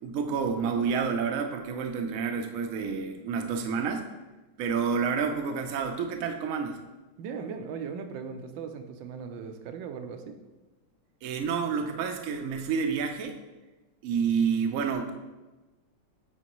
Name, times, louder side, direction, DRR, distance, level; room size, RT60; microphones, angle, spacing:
voice 1, 0.0-4.0 4.6-6.8 11.2-13.4 14.0-15.1, right 6 dB, 70° right, 4 dB, 0.8 m, -29 dB
voice 2, 7.2-10.4, right 6 dB, 85° right, 6 dB, 1.3 m, -38 dB
9.0 x 3.6 x 3.0 m, 1.1 s
omnidirectional pair, 2.0 m